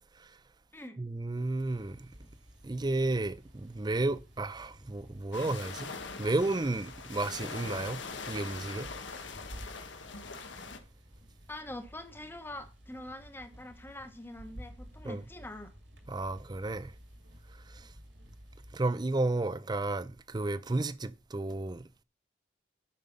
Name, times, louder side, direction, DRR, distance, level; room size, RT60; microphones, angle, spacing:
voice 1, 1.0-2.1 2.6-5.9 6.2-8.0 8.3-8.9 15.0-15.2 16.1-16.9 17.7-17.9 18.7-21.8, right 2 dB, 20° right, 0.5 m, -32 dB
sound 1, 1.6-18.8, equal, 75° right, 2.3 m, -53 dB
sound 2, 5.3-10.8, left 4 dB, 75° left, 1.4 m, -42 dB
voice 2, 11.5-15.7, left 1 dB, 10° left, 1.1 m, -44 dB
9.2 x 5.6 x 5.2 m
head